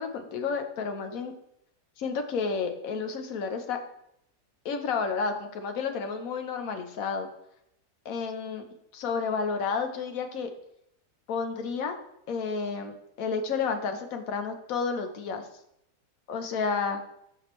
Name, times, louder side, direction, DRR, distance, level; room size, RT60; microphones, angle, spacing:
voice 1, 0.0-1.3 2.0-3.8 4.6-7.3 8.0-8.6 8.9-10.5 11.3-15.4 16.3-17.0, left 5 dB, 65° left, 6 dB, 1.2 m, -31 dB
12.0 x 4.9 x 3.1 m, 0.78 s
omnidirectional pair, 1.7 m